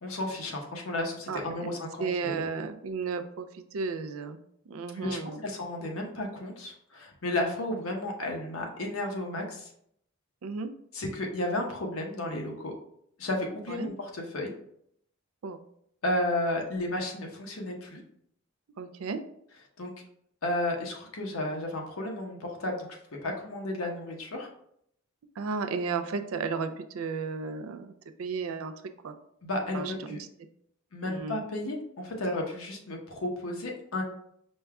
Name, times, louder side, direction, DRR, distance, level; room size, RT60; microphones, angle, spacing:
voice 1, 0.0-2.5 4.9-9.7 10.9-12.7 13.2-14.5 16.0-18.0 19.8-19.9 20.4-24.5 29.4-30.2 30.9-34.0, left 1 dB, 80° left, 1 dB, 0.9 m, -33 dB
voice 2, 1.3-1.7 2.0-4.4 4.7-5.5 10.4-10.7 13.7-13.9 15.4-15.6 18.8-19.2 25.4-27.9 28.2-28.7 29.0-29.2 29.7-30.2 31.1-31.4, right 5 dB, 90° right, 8 dB, 0.4 m, -33 dB
5.2 x 2.3 x 3.4 m, 0.70 s
head